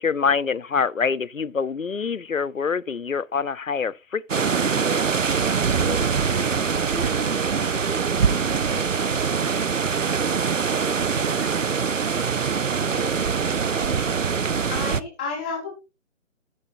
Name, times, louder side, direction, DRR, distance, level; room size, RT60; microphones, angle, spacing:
voice 1, 0.0-4.5 4.7-5.1, left 5 dB, 75° left, 0.8 m, -26 dB
sound 1, 4.3-15.0, right 6 dB, 70° right, 0.8 m, -23 dB
voice 2, 5.7-9.9 10.6-14.2, right 1 dB, 20° right, 5.4 m, -39 dB
voice 3, 14.7-15.7, left 4 dB, 5° left, 0.9 m, -32 dB
12.0 x 10.5 x 2.6 m
figure-of-eight pair, 145°, 40 cm